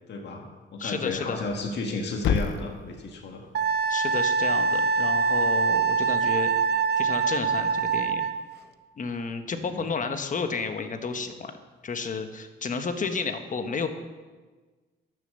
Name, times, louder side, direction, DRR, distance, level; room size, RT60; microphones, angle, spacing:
voice 1, 0.1-3.5 9.5-9.8, left 3 dB, 60° left, 2 dB, 1.8 m, -33 dB
voice 2, 0.8-1.4 3.9-6.5 7.0-8.2 9.0-11.5 11.8-13.9, left 5 dB, 40° left, 7 dB, 1.3 m, -31 dB
Thump thud, 1.3-5.4, left 7 dB, 75° left, 0.7 m, -34 dB
Wind instrument woodwind instrument, 3.5-8.4, right 5 dB, 55° right, 0.7 m, -24 dB
12.0 x 7.0 x 6.9 m, 1.3 s
cardioid pair, 90°, 20 cm